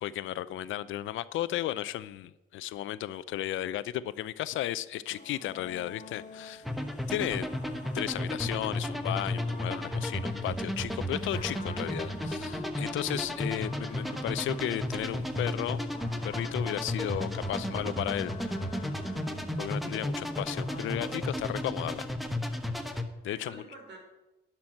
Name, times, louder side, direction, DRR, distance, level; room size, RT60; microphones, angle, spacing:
voice 1, 0.0-6.6 7.1-7.5 7.9-15.8 16.2-18.3 19.6-22.1 23.2-23.6, left 13 dB, 80° left, 16 dB, 0.5 m, -34 dB
French Horn in Street, 5.1-21.1, left 5 dB, 40° left, 1.2 m, -48 dB
sound 1, 6.6-23.0, left 1 dB, ahead, 1.1 m, -33 dB
voice 2, 7.3-7.6 17.6-18.3 19.2-19.9 23.2-24.0, right 2 dB, 60° right, 1 dB, 4.6 m, -50 dB
11.5 x 6.1 x 7.7 m, 1.0 s
cardioid pair, 90°, 20 cm